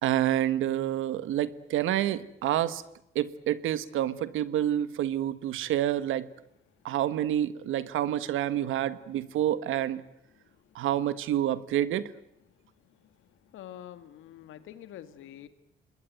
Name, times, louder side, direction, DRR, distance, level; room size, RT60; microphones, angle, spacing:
voice 1, 0.0-2.8 3.1-6.3 6.8-10.0 10.7-12.1, right 12 dB, 85° right, 15 dB, 1.4 m, -28 dB
voice 2, 13.4-15.5, left 11 dB, 85° left, 11 dB, 2.1 m, -46 dB
27.0 x 21.0 x 9.4 m, 0.81 s
cardioid pair, 90°, 20 cm